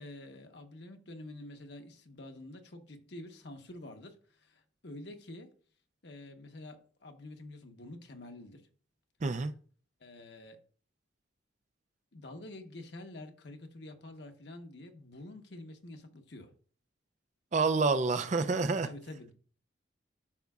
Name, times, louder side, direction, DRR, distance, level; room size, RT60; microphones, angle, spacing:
voice 1, 0.0-5.5 6.0-8.7 10.0-10.6 12.1-16.5 18.2-18.4 18.8-19.3, left 2 dB, 65° left, 1.1 m, -48 dB
voice 2, 9.2-9.5 17.5-18.9, right 4 dB, 40° right, 0.4 m, -28 dB
12.0 x 5.7 x 2.4 m
head